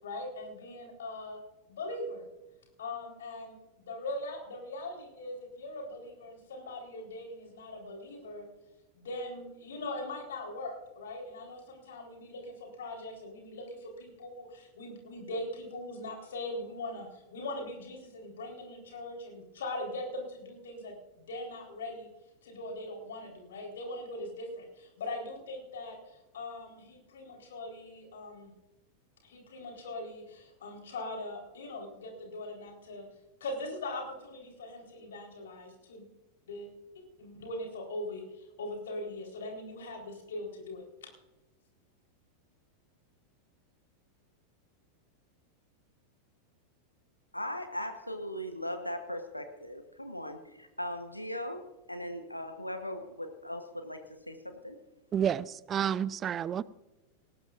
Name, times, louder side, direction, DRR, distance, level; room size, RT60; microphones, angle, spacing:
voice 1, 0.0-1.4 1.7-2.3 2.8-8.5 9.0-22.1 22.4-28.5 29.2-33.1 33.4-36.1 36.5-36.7 37.2-41.1, left 2 dB, 60° left, 1 dB, 4.2 m, -41 dB
voice 2, 47.3-51.6 51.9-54.0 54.3-54.8, left 1 dB, 85° left, 7 dB, 1.1 m, -38 dB
voice 3, 55.1-56.6, right 9 dB, 25° right, 21 dB, 0.4 m, -30 dB
18.5 x 18.0 x 2.6 m, 1.1 s
figure-of-eight pair, 90°, 0 cm